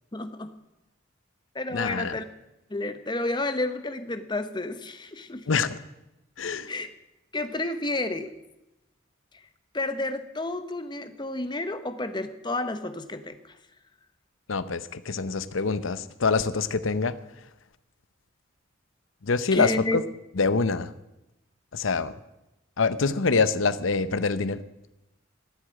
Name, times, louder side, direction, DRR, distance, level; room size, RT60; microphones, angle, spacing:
voice 1, 0.1-0.5 1.5-2.3 2.7-5.5 6.7-6.9 7.3-8.3 9.7-13.5 19.5-20.0, left 2 dB, 25° left, 10 dB, 0.8 m, -31 dB
voice 2, 1.7-2.2 5.5-5.8 6.4-6.7 14.5-17.2 19.2-20.0 20.3-20.9 21.7-22.1 22.8-24.6, left 4 dB, 85° left, 14 dB, 0.7 m, -25 dB
14.0 x 8.1 x 8.8 m, 0.94 s
head